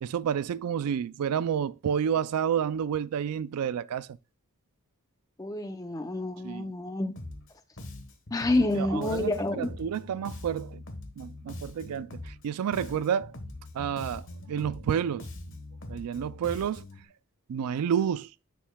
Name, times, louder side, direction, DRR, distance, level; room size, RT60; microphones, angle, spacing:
voice 1, 0.0-4.1 6.4-6.7 8.7-9.3 9.6-10.8 11.2-13.3 13.7-15.3 15.9-16.8 17.5-18.3, right 8 dB, 90° right, 0.3 m, -30 dB
voice 2, 5.4-7.1 8.3-9.7, left 2 dB, 15° left, 0.6 m, -28 dB
Bass guitar, 7.2-7.5 7.8-12.5 12.7-17.0, left 1 dB, 60° left, 1.3 m, -42 dB
9.2 x 6.5 x 2.3 m
head